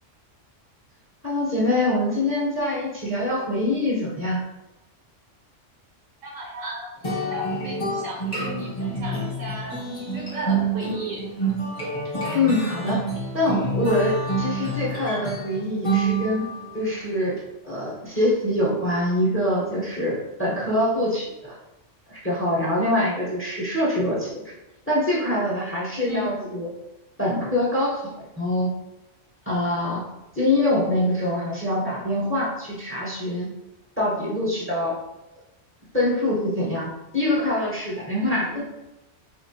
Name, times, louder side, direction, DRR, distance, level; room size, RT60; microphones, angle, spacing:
voice 1, 1.2-4.4 12.3-13.0 13.3-16.4 16.7-17.3 17.6-21.5 22.1-24.5 24.9-26.7 27.2-28.1 28.4-28.7 29.5-30.0 30.3-33.5 34.0-34.9 35.9-36.9 37.1-38.6, left 1 dB, 10° left, -6 dB, 0.9 m, -24 dB
voice 2, 6.2-11.2 26.1-26.6 38.2-38.6, right 1 dB, 85° right, -4 dB, 1.7 m, -35 dB
sound 1, 7.0-16.7, right 3 dB, 30° left, 1.2 m, -28 dB
4.4 x 2.8 x 2.8 m, 0.95 s
omnidirectional pair, 1.3 m